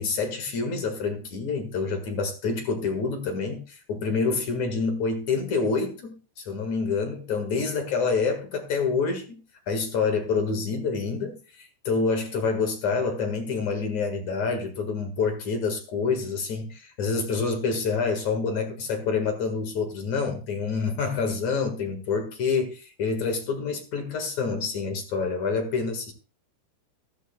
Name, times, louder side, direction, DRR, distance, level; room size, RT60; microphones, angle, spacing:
voice 1, 0.0-9.4 9.7-26.1, left 4 dB, 50° left, 2.5 m, -27 dB
14.5 x 13.5 x 2.3 m
omnidirectional pair, 5.1 m